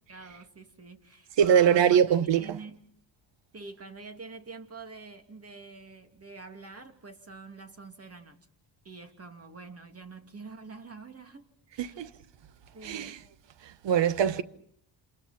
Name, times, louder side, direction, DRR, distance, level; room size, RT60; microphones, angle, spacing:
voice 1, 0.1-2.8 3.5-8.5 8.8-12.0 12.7-13.2 14.2-14.4, right 4 dB, 35° right, 2.6 m, -46 dB
voice 2, 1.4-2.6 11.8-12.1 12.8-13.2 13.6-14.4, right 8 dB, 70° right, 1.1 m, -23 dB
29.0 x 27.0 x 4.3 m
cardioid pair, 95°, 45 cm